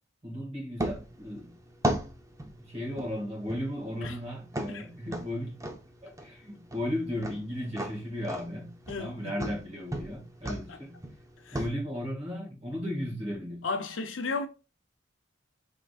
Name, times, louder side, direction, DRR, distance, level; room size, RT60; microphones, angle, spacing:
voice 1, 0.2-1.6 2.4-5.6 6.0-11.0 11.5-13.7, left 1 dB, 30° right, 2.0 m, -35 dB
sound 1, 0.8-11.7, right 1 dB, 15° right, 0.7 m, -37 dB
voice 2, 8.9-9.6 10.4-10.8 11.4-11.6 13.6-14.5, left 3 dB, 80° left, 0.6 m, -35 dB
5.8 x 3.7 x 2.4 m
head